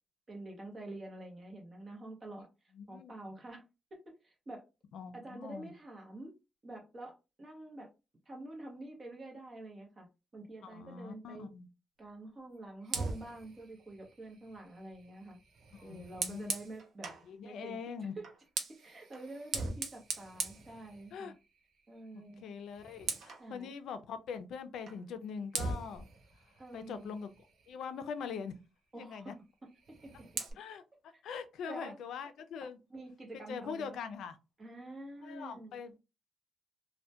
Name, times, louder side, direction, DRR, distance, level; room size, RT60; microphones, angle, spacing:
voice 1, 0.3-2.5 2.9-3.6 3.9-4.6 5.1-6.3 6.6-7.9 8.3-10.1 10.3-11.5 12.0-15.4 15.8-17.1 17.4-18.2 18.8-21.3 21.9-22.5 23.4-23.7 26.6-27.2 28.9-29.3 30.0-30.1 31.6-32.0 32.6-34.0 34.6-35.8, right 2 dB, 25° right, 0.7 m, -47 dB
voice 2, 2.7-3.1 4.9-5.7 10.6-11.7 15.8-16.5 17.2-18.1 21.1-21.3 22.4-26.1 26.7-27.3 27.7-28.5 28.9-29.3 30.6-30.8 31.2-32.8 33.5-34.4 35.2-36.0, left 6 dB, 85° left, 0.3 m, -42 dB
Fire, 12.8-17.3 18.2-21.4 21.8-22.1 22.4-23.5 24.9-25.0 25.5-27.8 29.7-30.5, right 4 dB, 60° right, 0.5 m, -41 dB
2.2 x 2.1 x 2.7 m
wide cardioid pair, 170°, 0 cm